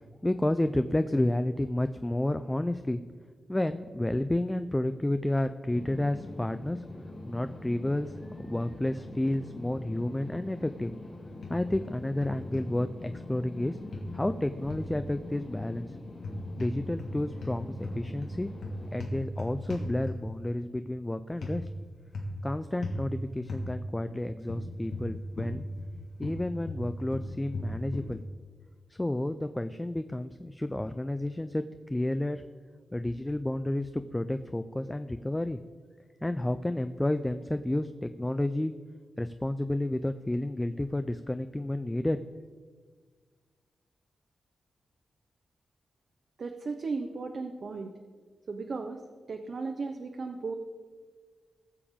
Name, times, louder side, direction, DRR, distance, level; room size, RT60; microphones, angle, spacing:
voice 1, 0.2-3.0 3.5-6.8 7.3-10.9 11.5-13.8 14.1-15.9 16.6-18.5 18.9-21.7 22.4-25.6 26.2-28.2 28.9-31.6 31.9-32.4 32.9-35.6 36.2-38.7 39.2-42.2, left 1 dB, 10° left, 10 dB, 0.3 m, -31 dB
sound 1, 5.7-19.0, left 2 dB, 60° left, 2.5 m, -44 dB
sound 2, 11.4-11.9 12.2-12.7 13.9-14.9 16.2-17.1 17.4-20.4 21.4-21.6 22.1-22.4 22.8-23.0 23.5-23.7 24.5-25.9 26.2-28.1, left 1 dB, 85° left, 1.7 m, -36 dB
voice 2, 46.4-47.9 48.5-50.5, right 4 dB, 50° right, 4 dB, 0.7 m, -36 dB
18.5 x 7.0 x 3.6 m, 1.5 s
wide cardioid pair, 125°, 0 cm